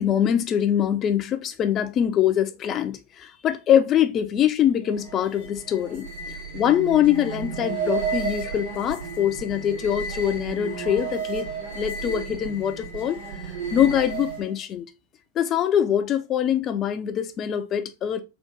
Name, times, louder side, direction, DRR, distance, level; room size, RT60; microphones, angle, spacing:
voice 1, 0.0-11.5 11.7-13.2 13.7-14.9 15.4-18.2, left 10 dB, 30° left, 0.5 m, -23 dB
sound 1, 4.8-14.6, right 5 dB, 70° right, 2.1 m, -33 dB
3.8 x 2.6 x 3.6 m
figure-of-eight pair, 90°, 0 cm